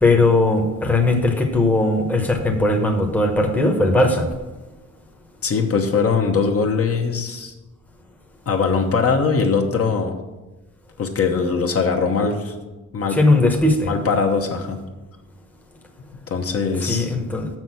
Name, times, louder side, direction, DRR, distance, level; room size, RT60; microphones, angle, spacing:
voice 1, 0.0-4.3 13.1-13.9 16.8-17.5, left 2 dB, 5° left, 2 dB, 1.0 m, -18 dB
voice 2, 5.4-7.5 8.5-10.1 11.0-12.5 12.9-13.2 13.9-14.8 16.3-17.1, left 5 dB, 50° left, 2 dB, 1.1 m, -21 dB
6.9 x 6.0 x 7.6 m, 1.1 s
wide cardioid pair, 150°, 30 cm